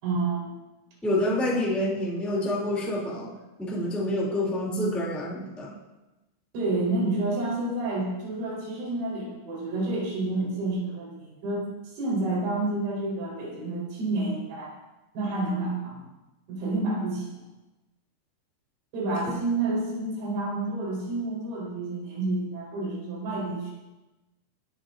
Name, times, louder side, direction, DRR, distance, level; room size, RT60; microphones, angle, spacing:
voice 1, 0.0-0.6 6.5-14.7 15.1-16.0 16.5-17.5 18.9-23.7, right 2 dB, 80° right, -4 dB, 6.6 m, -29 dB
voice 2, 1.0-3.3 3.6-5.7 19.3-19.4, left 1 dB, ahead, -4 dB, 1.0 m, -27 dB
23.0 x 12.5 x 2.6 m, 1.1 s
omnidirectional pair, 5.7 m